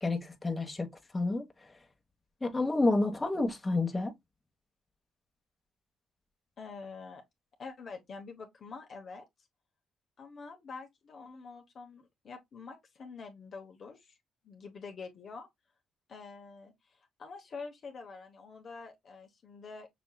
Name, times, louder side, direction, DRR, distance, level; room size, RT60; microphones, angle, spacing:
voice 1, 0.0-1.4 2.4-4.1, left 2 dB, 20° left, 1.3 m, -29 dB
voice 2, 6.6-7.2 7.6-9.3 10.2-14.2 14.4-15.5 16.1-19.9, left 4 dB, 50° left, 1.1 m, -46 dB
6.2 x 2.9 x 2.3 m
cardioid pair, 90°, 0 cm